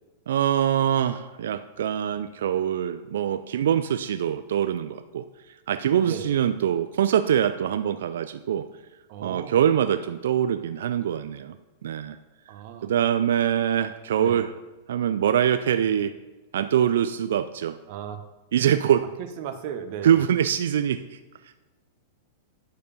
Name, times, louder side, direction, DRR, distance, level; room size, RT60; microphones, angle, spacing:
voice 1, 0.3-5.2 5.7-8.7 9.2-11.6 11.8-12.2 12.8-14.5 14.9-16.1 16.5-17.8 18.5-19.1 20.0-21.2, right 9 dB, 65° right, 10 dB, 0.4 m, -24 dB
voice 2, 9.1-9.6 12.5-12.9 14.2-14.4 17.9-18.2 19.4-20.2, right 9 dB, 50° right, 7 dB, 1.0 m, -35 dB
9.2 x 6.6 x 5.1 m, 1.2 s
figure-of-eight pair, 100°, 0 cm